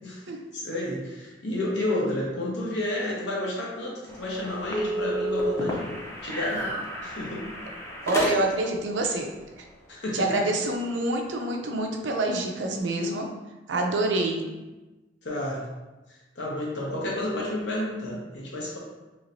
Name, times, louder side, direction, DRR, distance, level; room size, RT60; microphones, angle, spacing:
voice 1, 0.5-6.7 7.0-7.4 9.9-10.4 15.2-15.6 16.4-18.8, left 1 dB, 75° left, -3 dB, 0.9 m, -31 dB
sound 1, 4.1-8.8, equal, 15° left, 0.5 m, -31 dB
voice 2, 8.1-9.3 10.1-13.3 13.7-14.5, right 2 dB, 85° right, 2 dB, 0.5 m, -26 dB
3.2 x 3.1 x 2.6 m, 1.1 s
head